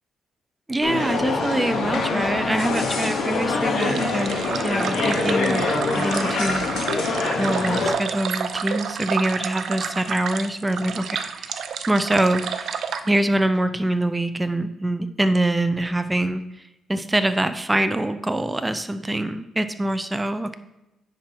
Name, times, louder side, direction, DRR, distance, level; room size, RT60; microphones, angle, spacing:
voice 1, 0.7-4.4 4.6-5.7 6.0-6.7 7.4-11.6 11.9-12.8 13.1-16.4 16.9-20.5, right 1 dB, 15° right, 10 dB, 0.5 m, -24 dB
sound 1, 0.8-7.9, left 3 dB, 75° left, 2.2 m, -24 dB
sound 2, 3.8-13.1, right 7 dB, 65° right, 0.6 m, -30 dB
9.8 x 4.4 x 4.7 m, 0.93 s
cardioid pair, 90°, 0 cm